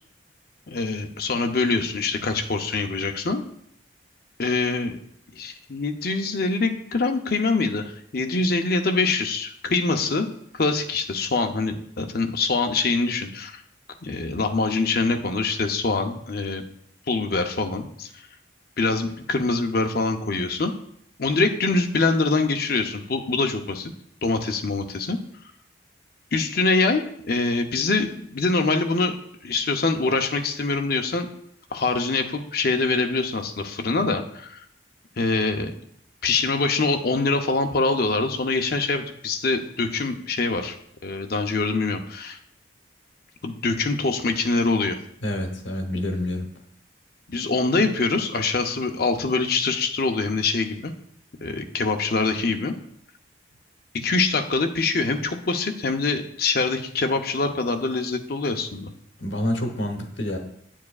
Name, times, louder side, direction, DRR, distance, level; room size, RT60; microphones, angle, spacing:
voice 1, 0.7-3.4 4.4-4.9 5.4-10.3 10.5-13.6 14.0-16.6 17.1-18.1 18.8-20.7 21.2-23.9 24.2-25.2 26.3-29.2 29.4-31.3 31.7-34.6 35.2-35.8 36.2-40.7 41.0-42.4 43.4-45.0 47.3-50.9 51.4-52.7 54.0-58.9, left 3 dB, 50° left, 5 dB, 0.6 m, -24 dB
voice 2, 45.2-46.5 59.2-60.4, left 1 dB, 70° left, 4 dB, 1.0 m, -27 dB
9.5 x 7.3 x 2.4 m, 0.70 s
head